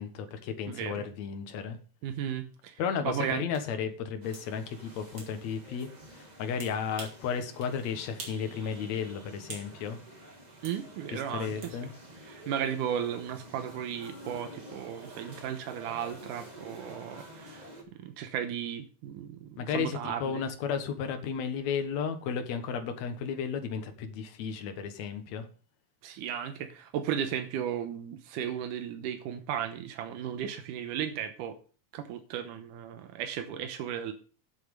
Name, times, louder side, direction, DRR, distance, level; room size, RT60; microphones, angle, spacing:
voice 1, 0.0-1.8 2.8-5.9 6.4-10.0 11.1-11.9 19.6-25.5, left 6 dB, 65° left, 7 dB, 2.4 m, -33 dB
voice 2, 0.7-1.1 2.0-3.4 10.6-11.8 12.2-17.7 18.0-20.5 26.0-31.6 31.9-34.1, right 9 dB, 85° right, 8 dB, 2.5 m, -35 dB
sound 1, 3.5-3.7 4.3-4.5 5.2-5.3 6.6-7.2 7.6-7.7 8.2-8.5 8.8-9.7 10.6-10.8 11.6-11.8, right 4 dB, 40° right, 2.9 m, -45 dB
sound 2, 4.2-17.8, right 1 dB, 20° right, 1.1 m, -49 dB
8.5 x 8.0 x 5.3 m, 0.39 s
omnidirectional pair, 3.6 m